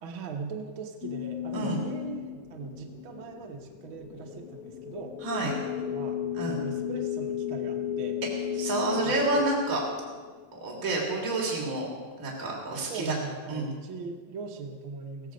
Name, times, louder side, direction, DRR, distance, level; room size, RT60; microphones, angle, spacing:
voice 1, 0.0-5.1 5.4-8.2 9.0-9.2 12.9-15.3, right 5 dB, 55° right, 2 dB, 1.5 m, -40 dB
sound 1, 1.0-10.8, left 10 dB, 65° left, 1.5 m, -35 dB
voice 2, 5.2-5.5 6.3-6.6 8.6-9.8 10.5-11.9 12.2-13.1 13.5-13.7, right 2 dB, 25° right, -3 dB, 3.5 m, -29 dB
17.0 x 16.5 x 5.2 m, 1.4 s
omnidirectional pair, 3.6 m